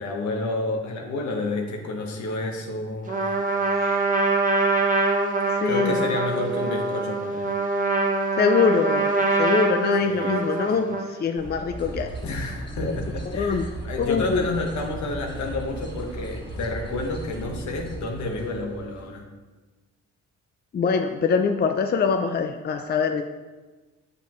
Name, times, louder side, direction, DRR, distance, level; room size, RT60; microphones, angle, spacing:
voice 1, 0.0-3.6 5.6-7.6 10.0-10.9 12.2-19.3, left 2 dB, 70° left, 2 dB, 1.3 m, -30 dB
Trumpet, 3.1-11.2, right 3 dB, 25° right, 1.2 m, -24 dB
voice 2, 5.5-6.1 8.4-9.1 9.4-12.1 12.8-13.0 13.3-13.6 14.0-14.4 20.7-23.2, left 5 dB, 35° left, 6 dB, 0.5 m, -23 dB
sound 1, 11.4-19.1, right 1 dB, 15° left, 2.2 m, -36 dB
8.1 x 6.7 x 3.1 m, 1.2 s
cardioid pair, 105°, 30 cm